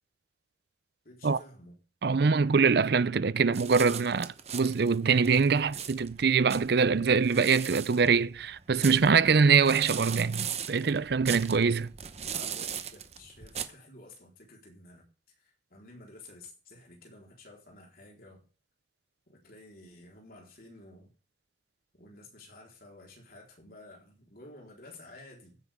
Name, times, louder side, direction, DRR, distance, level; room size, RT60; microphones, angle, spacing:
voice 1, 1.0-1.8 12.3-18.4 19.3-21.1 21.9-25.6, left 2 dB, 50° left, 4.2 m, -52 dB
voice 2, 2.0-11.9, right 5 dB, 60° right, 0.5 m, -24 dB
sound 1, 3.5-13.6, right 8 dB, 35° right, 0.9 m, -39 dB
15.5 x 9.4 x 3.7 m
head